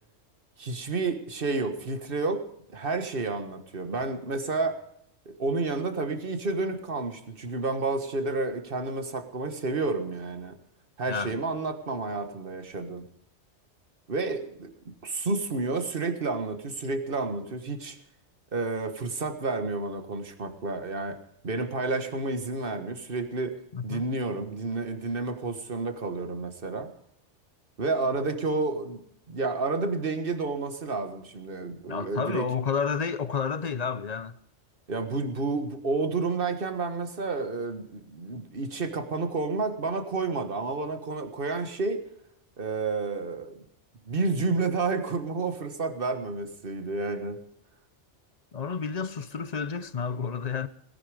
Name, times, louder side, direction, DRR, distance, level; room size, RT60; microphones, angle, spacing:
voice 1, 0.6-2.4 2.7-4.8 5.2-10.6 11.0-13.1 14.1-14.7 15.0-18.0 18.5-21.2 21.4-23.5 23.8-26.9 27.8-29.0 29.3-32.4 34.9-42.0 42.6-43.5 44.1-47.4, right 3 dB, 50° right, 1.7 m, -30 dB
voice 2, 11.1-11.4 23.7-24.0 31.9-34.4 48.5-50.7, left 6 dB, 45° left, 0.6 m, -30 dB
18.5 x 11.0 x 5.0 m
omnidirectional pair, 1.2 m